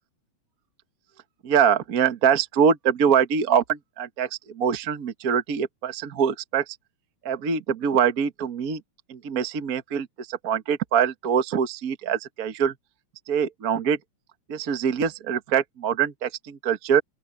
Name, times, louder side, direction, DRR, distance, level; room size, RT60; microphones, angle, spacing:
voice 1, 1.4-6.8 7.2-8.8 9.1-12.7 13.3-14.0 14.5-17.0, right 7 dB, 50° right, 1.1 m, -24 dB
open air
omnidirectional pair, 3.4 m